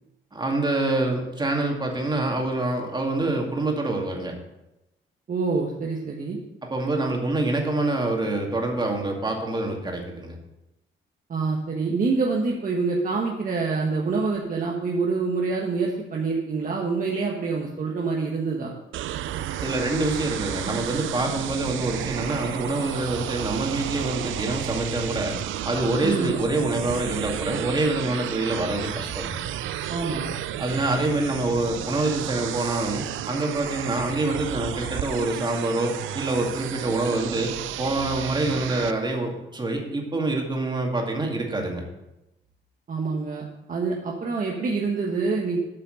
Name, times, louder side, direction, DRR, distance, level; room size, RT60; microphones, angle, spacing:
voice 1, 0.3-4.4 6.6-10.4 19.6-25.3 25.6-29.4 30.6-41.8, right 2 dB, 20° right, 1 dB, 2.2 m, -26 dB
voice 2, 5.3-6.4 11.3-18.7 26.0-26.3 29.9-30.3 42.9-45.6, right 4 dB, 45° right, -1 dB, 1.4 m, -26 dB
sound 1, 18.9-38.9, right 11 dB, 80° right, 0.5 m, -32 dB
8.7 x 5.6 x 6.5 m, 0.94 s
cardioid pair, 90°, 20 cm